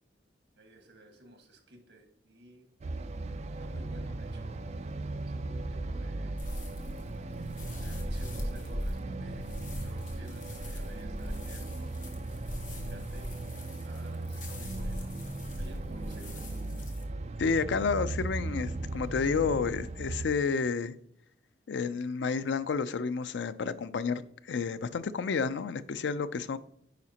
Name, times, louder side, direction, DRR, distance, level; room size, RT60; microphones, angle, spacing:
voice 1, 0.6-2.7 3.6-4.7 5.3-6.4 7.8-9.5 9.7-11.9 12.7-13.4 13.8-15.1 15.5-16.4, right 1 dB, 80° right, 1.5 m, -53 dB
sound 1, 2.8-20.3, right 2 dB, 40° right, 0.4 m, -38 dB
sound 2, 6.4-17.0, equal, 45° left, 1.2 m, -40 dB
voice 2, 17.4-20.9 21.7-26.6, left 5 dB, 85° left, 0.4 m, -30 dB
9.3 x 4.8 x 2.9 m
head